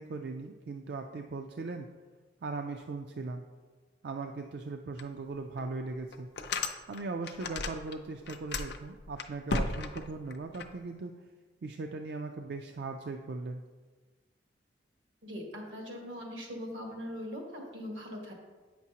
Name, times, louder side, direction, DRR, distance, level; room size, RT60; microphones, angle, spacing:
voice 1, 0.0-1.9 2.4-3.4 4.0-6.3 6.9-11.1 11.6-13.6, right 3 dB, 60° right, 4 dB, 0.4 m, -39 dB
sound 1, 5.0-5.1 5.6-5.7 6.1-7.9 8.2-10.7, left 3 dB, 60° left, 0.5 m, -35 dB
voice 2, 15.2-18.3, equal, 85° right, 0 dB, 1.6 m, -41 dB
8.8 x 6.0 x 2.8 m, 1.4 s
head